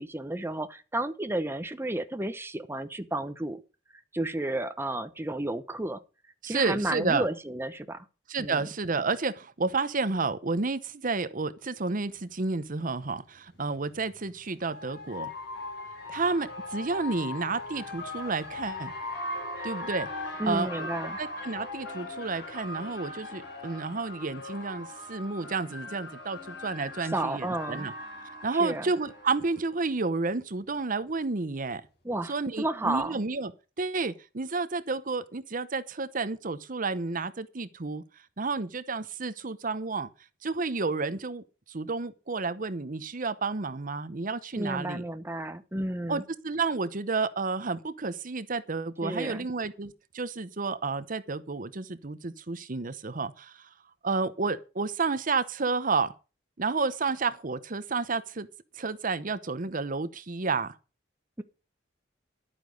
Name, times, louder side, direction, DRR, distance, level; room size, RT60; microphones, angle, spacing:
voice 1, 0.0-3.6 4.1-6.0 6.5-8.0 8.4-8.6 20.4-21.2 27.0-27.9 28.6-28.8 32.0-33.2 44.6-46.2 49.0-49.5, right 1 dB, 15° right, 0.9 m, -32 dB
voice 2, 6.4-7.3 8.3-15.3 16.1-18.9 19.6-20.9 21.2-27.9 28.2-31.8 32.3-33.5 33.8-38.0 38.4-40.1 40.4-45.0 46.1-53.7 54.0-56.1 56.6-58.5 58.8-60.8, right 4 dB, 45° right, 0.9 m, -31 dB
sound 1, 12.4-12.5 14.0-29.6, left 2 dB, 60° left, 5.3 m, -39 dB
11.5 x 8.9 x 6.4 m
head